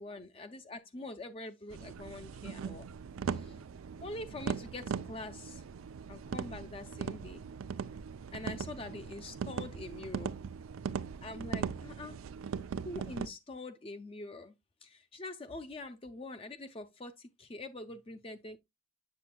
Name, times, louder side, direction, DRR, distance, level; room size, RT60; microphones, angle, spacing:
voice 1, 0.0-2.9 3.3-5.6 6.1-7.5 8.3-10.5 11.2-12.2 12.8-14.5 14.8-18.6, left 2 dB, 30° left, 0.5 m, -45 dB
sound 1, 1.7-13.3, right 6 dB, 90° right, 0.4 m, -39 dB
7.6 x 6.9 x 2.2 m
head